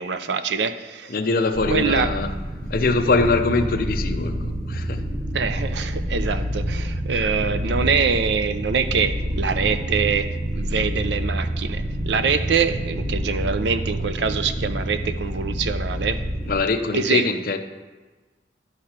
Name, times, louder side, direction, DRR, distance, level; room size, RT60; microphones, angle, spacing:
voice 1, 0.0-1.2 1.7-2.1 5.3-16.2 16.9-17.3, right 5 dB, 80° right, 11 dB, 0.5 m, -24 dB
voice 2, 1.1-2.3 2.7-5.0 16.5-17.6, left 3 dB, 50° left, 8 dB, 0.5 m, -23 dB
sound 1, 1.5-16.6, equal, 20° right, 0.6 m, -27 dB
11.5 x 4.8 x 4.3 m, 1.3 s
head